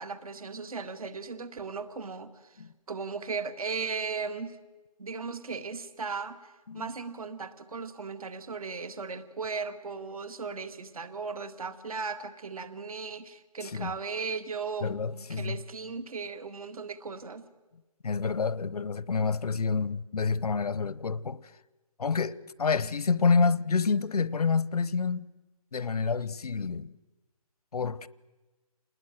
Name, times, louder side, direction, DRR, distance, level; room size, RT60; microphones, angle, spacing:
voice 1, 0.0-2.6 2.9-4.6 5.0-17.4, right 5 dB, 70° right, 2.2 m, -37 dB
voice 2, 14.8-15.6 18.0-21.5 22.0-25.3 25.7-27.0 27.7-28.1, left 5 dB, 80° left, 0.9 m, -28 dB
28.0 x 20.5 x 9.2 m
hypercardioid pair, 165°, 19 cm